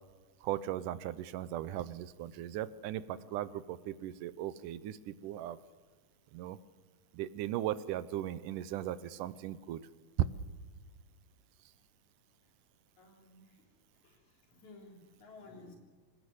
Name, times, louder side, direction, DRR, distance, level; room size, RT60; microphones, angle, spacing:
voice 1, 0.4-5.6 6.3-6.6 7.1-9.8, right 12 dB, 85° right, 15 dB, 2.4 m, -38 dB
voice 2, 13.0-13.7 14.0-15.8, left 3 dB, 65° left, 1 dB, 4.7 m, -55 dB
26.5 x 17.5 x 8.0 m, 1.4 s
omnidirectional pair, 3.6 m